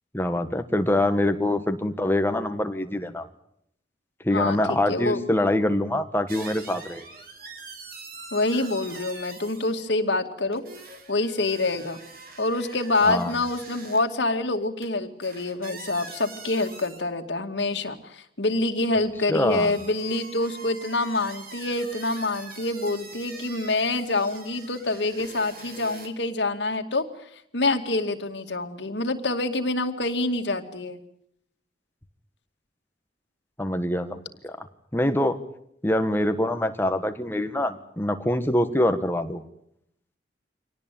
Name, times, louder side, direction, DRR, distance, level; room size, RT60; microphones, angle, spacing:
voice 1, 0.1-3.3 4.2-7.0 13.0-13.3 19.3-19.7 33.6-34.7 34.9-35.4 35.8-39.4, left 1 dB, 10° left, 8 dB, 1.6 m, -24 dB
voice 2, 4.3-5.2 8.3-10.6 11.1-12.0 12.4-27.0 27.5-31.0, left 2 dB, 70° left, 5 dB, 2.4 m, -26 dB
sound 1, 6.3-9.9 10.5-14.0 14.8-14.9 15.2-17.1 17.6-18.0 19.0-26.1, right 3 dB, 55° right, 3.7 m, -44 dB
25.5 x 18.5 x 9.3 m, 0.74 s
head